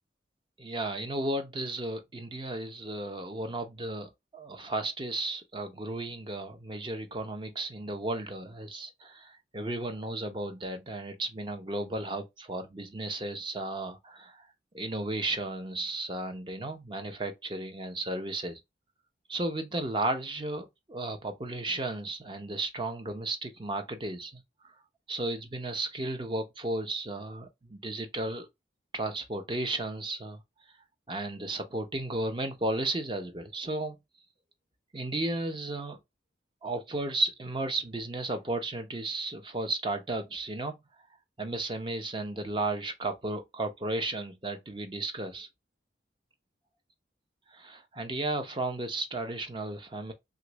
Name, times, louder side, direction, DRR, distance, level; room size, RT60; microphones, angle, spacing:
voice 1, 0.6-14.4 14.7-18.6 19.3-24.4 25.1-28.5 28.9-30.4 31.1-34.0 34.9-36.0 36.6-40.8 41.4-45.5 47.5-50.1, right 2 dB, 25° right, 0.6 m, -34 dB
3.3 x 2.5 x 3.0 m
head